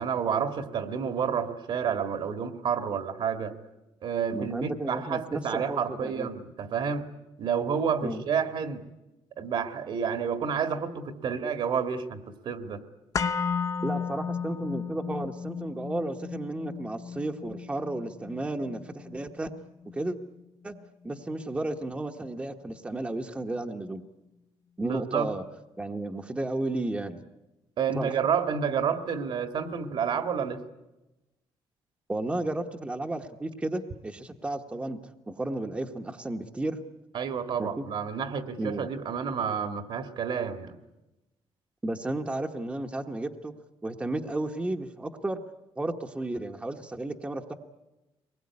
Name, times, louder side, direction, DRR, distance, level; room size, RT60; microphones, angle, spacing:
voice 1, 0.0-3.6 4.0-7.1 7.4-8.8 9.4-12.8 24.8-25.3 27.8-30.6 37.1-40.8, right 7 dB, 60° right, 9 dB, 1.9 m, -30 dB
voice 2, 4.3-6.3 8.0-8.2 13.8-19.5 19.9-20.2 20.6-20.7 21.0-24.0 24.8-25.4 25.8-27.2 27.9-28.1 32.1-35.0 35.3-36.8 37.6-37.8 38.6-38.8 41.8-43.5 43.8-45.4 45.8-47.5, right 2 dB, 10° right, 4 dB, 1.1 m, -33 dB
sound 1, 13.1-21.2 21.5-21.6, left 6 dB, 35° left, 0.8 m, -35 dB
24.0 x 20.5 x 9.7 m, 1.0 s
cardioid pair, 150°, 10 cm